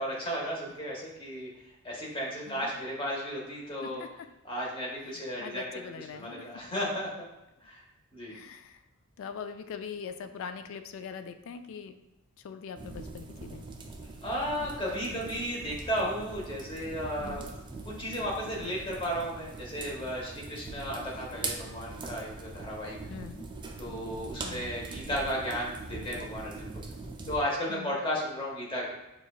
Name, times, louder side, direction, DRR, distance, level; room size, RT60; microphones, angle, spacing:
voice 1, 0.0-1.5 1.8-4.0 4.4-5.8 6.1-7.1 7.6-7.8 8.1-8.4 14.2-17.4 17.8-23.0 23.8-26.7 27.3-28.9, equal, 25° left, -3 dB, 1.0 m, -34 dB
voice 2, 3.8-4.3 5.1-6.6 8.3-8.8 9.2-12.0 12.4-13.7 15.5-15.6 17.2-17.5 23.1-23.5 24.4-24.7 27.7-28.0, left 6 dB, 65° left, 9 dB, 0.3 m, -42 dB
sound 1, 12.8-27.4, right 3 dB, 20° right, 0.3 m, -42 dB
5.7 x 2.4 x 2.4 m, 0.97 s
head